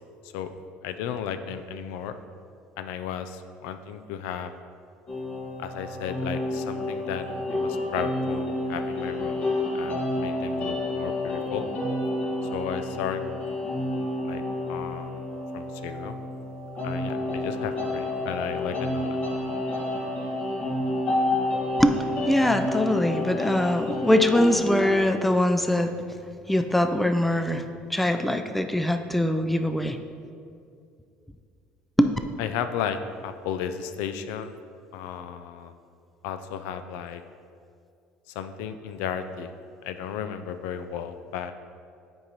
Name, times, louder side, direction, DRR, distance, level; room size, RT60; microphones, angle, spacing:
voice 1, 0.8-2.1 2.8-4.5 5.6-9.4 9.7-11.6 12.5-13.2 14.3-14.4 14.7-15.2 15.5-16.2 16.8-19.2 32.4-34.6 34.9-35.7 36.2-37.2 38.3-39.5 39.8-41.5, left 8 dB, 85° left, 9 dB, 0.3 m, -34 dB
sound 1, 5.1-25.0, left 1 dB, 35° left, 1.4 m, -29 dB
voice 2, 22.3-25.9 26.5-27.6 27.9-30.0 32.0-32.1, left 1 dB, 5° left, 8 dB, 0.3 m, -22 dB
7.9 x 5.3 x 2.9 m, 2.3 s
cardioid pair, 120°, 4 cm